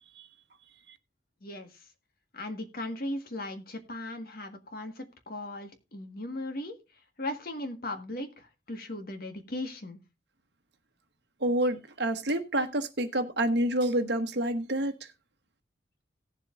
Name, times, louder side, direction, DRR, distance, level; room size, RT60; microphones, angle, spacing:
voice 1, 1.4-1.8 2.3-6.8 7.2-10.0, left 1 dB, 55° left, 1.6 m, -37 dB
voice 2, 11.4-15.1, right 1 dB, 60° right, 1.2 m, -28 dB
18.0 x 7.5 x 2.5 m
head